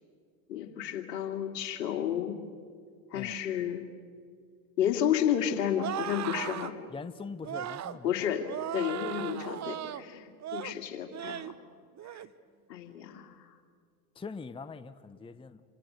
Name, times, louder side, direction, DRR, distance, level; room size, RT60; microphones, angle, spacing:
voice 1, 0.5-2.4 3.1-3.8 4.8-6.8 8.0-8.5 8.7-11.5 12.7-13.6, left 9 dB, 75° left, 6 dB, 2.6 m, -31 dB
sound 1, 5.8-6.7 7.4-8.0 8.5-10.0 10.4-10.8 11.1-11.5 12.0-12.3, right 11 dB, 35° right, 1.1 m, -37 dB
voice 2, 6.9-8.1 14.1-15.6, left 4 dB, 10° left, 13 dB, 0.8 m, -42 dB
29.5 x 25.5 x 6.6 m, 2.1 s
hypercardioid pair, 85°, 49 cm